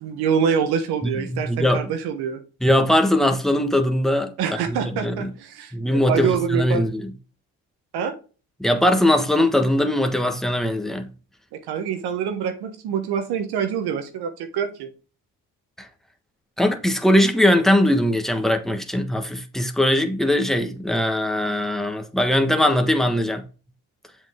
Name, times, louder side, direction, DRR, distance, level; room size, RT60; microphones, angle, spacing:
voice 1, 0.0-2.4 4.4-6.8 7.9-8.1 11.7-14.9, right 7 dB, 85° right, 1.3 m, -25 dB
voice 2, 1.0-1.8 2.6-4.3 4.7-5.3 5.7-7.1 8.6-11.1 15.8-15.9 16.6-23.4, left 1 dB, ahead, 1.5 m, -20 dB
7.4 x 5.2 x 3.8 m
supercardioid pair, 55°, 38 cm